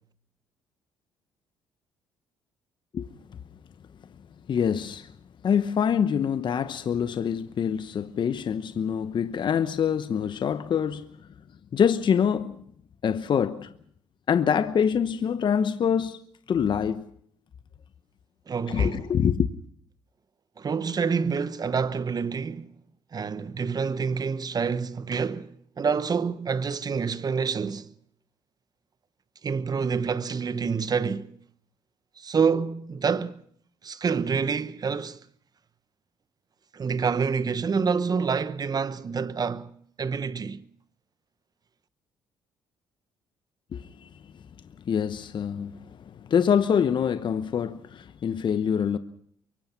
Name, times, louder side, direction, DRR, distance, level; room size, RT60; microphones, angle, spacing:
voice 1, 4.5-5.1 5.4-11.1 11.7-12.6 13.0-13.7 14.3-16.2 16.5-17.0 18.7-19.5 43.7-44.1 44.8-49.0, left 7 dB, 50° left, 1.0 m, -25 dB
voice 2, 18.5-19.0 20.6-22.7 23.1-27.9 29.4-31.3 32.2-33.4 33.8-35.2 36.7-40.6, right 5 dB, 40° right, 1.1 m, -27 dB
24.0 x 23.0 x 5.8 m
hypercardioid pair, 60°, 10 cm